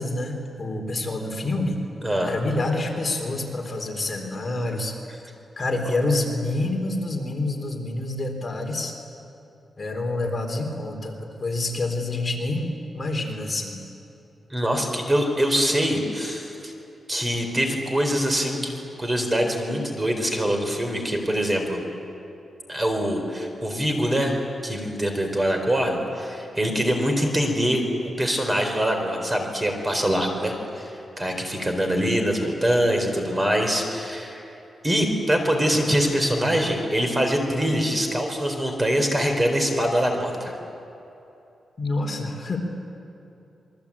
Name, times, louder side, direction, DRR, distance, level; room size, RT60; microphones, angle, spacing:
voice 1, 0.0-1.8 2.2-4.9 5.6-8.9 9.8-13.8 36.3-36.4 41.8-42.6, left 2 dB, 30° left, 1 dB, 4.0 m, -27 dB
voice 2, 2.0-2.3 14.5-16.7 17.1-21.8 22.7-24.3 24.6-27.8 28.2-30.9 31.2-34.4 34.8-40.6, equal, 20° right, 4 dB, 4.1 m, -24 dB
27.5 x 23.0 x 8.7 m, 2.8 s
wide cardioid pair, 120°, 0 cm